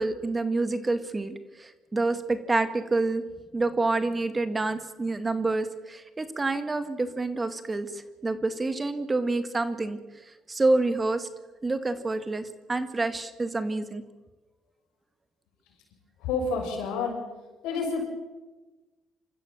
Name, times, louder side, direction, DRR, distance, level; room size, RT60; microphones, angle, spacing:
voice 1, 0.0-3.2 3.5-10.0 10.5-11.3 11.6-12.4 12.7-14.0, right 2 dB, 25° right, 10 dB, 2.0 m, -27 dB
voice 2, 16.2-17.2 17.6-18.1, left 4 dB, 85° left, 1 dB, 6.2 m, -29 dB
26.5 x 14.0 x 7.2 m, 1.2 s
supercardioid pair, 80°, 0 cm